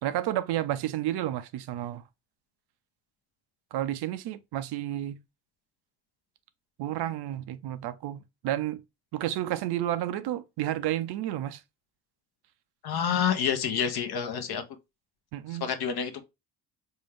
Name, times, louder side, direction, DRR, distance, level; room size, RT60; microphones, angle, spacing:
voice 1, 0.0-2.0 3.7-5.2 6.8-8.8 9.1-11.6 15.3-15.7, right 13 dB, 55° right, 0.5 m, -31 dB
voice 2, 12.8-14.6 15.6-16.2, left 8 dB, 50° left, 0.8 m, -28 dB
4.3 x 2.3 x 3.3 m
hypercardioid pair, 45°, 50 cm